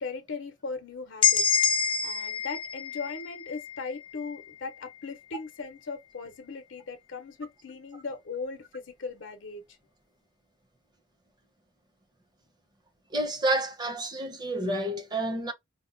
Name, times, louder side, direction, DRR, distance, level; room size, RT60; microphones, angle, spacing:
voice 1, 0.0-1.5 2.0-9.6, left 4 dB, 80° left, 0.6 m, -38 dB
sound 1, 1.2-5.0, left 7 dB, 25° left, 0.4 m, -28 dB
voice 2, 13.1-15.5, right 1 dB, 20° right, 0.6 m, -29 dB
4.1 x 2.1 x 2.5 m
head